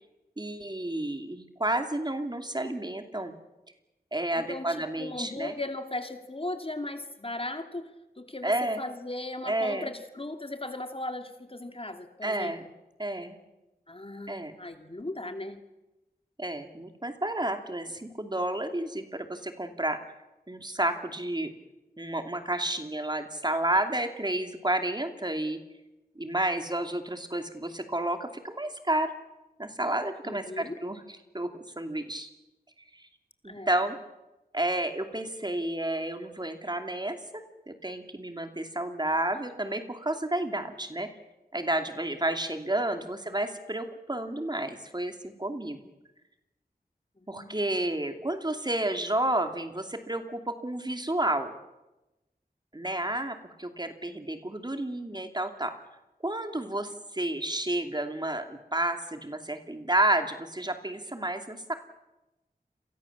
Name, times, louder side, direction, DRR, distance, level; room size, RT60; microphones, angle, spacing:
voice 1, 0.4-3.3 4.1-5.5 8.4-8.8 9.4-9.9 12.2-12.7 13.0-13.4 14.3-14.6 16.4-20.0 20.5-21.5 22.0-25.6 26.2-29.1 29.6-31.0 31.3-32.3 33.4-34.0 34.5-37.2 37.7-41.1 41.5-45.8 47.3-51.5 52.7-55.7 56.2-61.7, right 1 dB, 25° right, 6 dB, 2.7 m, -31 dB
voice 2, 4.4-12.5 13.9-15.6 30.2-30.8 33.5-33.7 47.2-47.7, left 2 dB, 35° left, 6 dB, 2.7 m, -37 dB
29.5 x 23.5 x 7.3 m, 1.0 s
wide cardioid pair, 75°, 16 cm